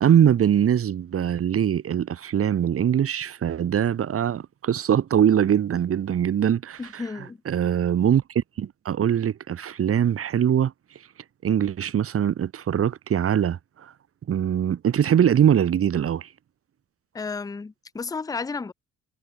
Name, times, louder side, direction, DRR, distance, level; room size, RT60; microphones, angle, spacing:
voice 1, 0.0-7.0 7.5-10.7 11.4-13.9 14.3-16.3, right 9 dB, 50° right, 1.1 m, -22 dB
voice 2, 6.8-7.4 17.1-18.7, left 4 dB, 10° left, 0.5 m, -32 dB
cardioid pair, 90°, 30 cm